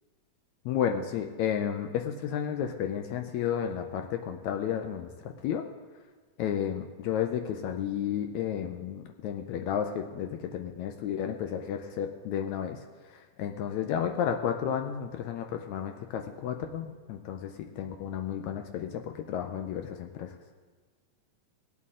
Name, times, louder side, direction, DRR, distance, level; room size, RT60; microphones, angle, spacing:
voice 1, 0.7-5.7 6.4-12.8 13.1-20.4, left 9 dB, 75° left, 4 dB, 1.8 m, -32 dB
18.5 x 8.4 x 3.7 m, 1.4 s
omnidirectional pair, 3.7 m